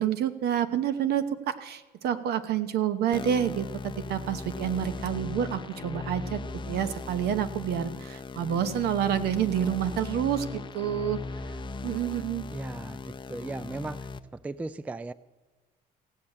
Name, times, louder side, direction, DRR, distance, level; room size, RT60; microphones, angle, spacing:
voice 1, 0.0-6.4 6.7-11.2 11.8-12.4, right 9 dB, 70° right, 11 dB, 0.9 m, -28 dB
sound 1, 3.1-14.2, left 3 dB, 30° left, 0.6 m, -38 dB
voice 2, 12.5-13.0 13.3-14.0 14.4-15.1, right 3 dB, 10° right, 18 dB, 0.3 m, -36 dB
16.0 x 6.5 x 8.6 m, 1.3 s
cardioid pair, 110°, 17 cm